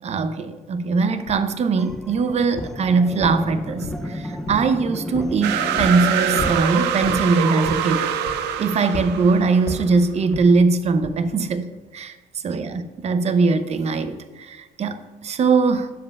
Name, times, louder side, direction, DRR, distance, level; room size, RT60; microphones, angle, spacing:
voice 1, 0.0-8.1 8.6-12.1 12.4-15.9, right 4 dB, 40° right, 9 dB, 0.7 m, -21 dB
sound 1, 1.3-1.4 1.9-2.2 2.6-2.8 3.2-4.1 4.5-4.7 5.1-5.4 5.8-6.0 6.4-6.6 7.0-7.3 7.6-7.9 8.3-8.6 8.9-9.1 9.7-9.9 10.3-10.5 11.0-11.2, left 2 dB, 75° left, 2.1 m, -32 dB
sound 2, 1.8-6.6, left 1 dB, ahead, 0.5 m, -33 dB
sound 3, 5.4-9.8, right 8 dB, 85° right, 0.6 m, -24 dB
12.0 x 7.4 x 2.4 m, 1.2 s
cardioid pair, 110°, 17 cm